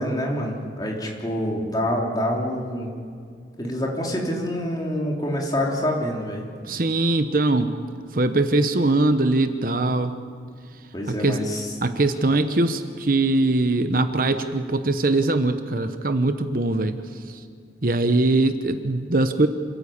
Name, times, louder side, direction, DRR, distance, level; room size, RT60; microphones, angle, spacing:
voice 1, 0.0-2.9 3.6-6.4 10.9-11.7, equal, 20° left, -1 dB, 3.4 m, -26 dB
voice 2, 6.6-7.7 8.1-10.1 11.1-11.4 11.8-17.4 17.8-19.5, right 2 dB, 50° right, 9 dB, 1.0 m, -22 dB
27.0 x 14.5 x 8.7 m, 2.2 s
head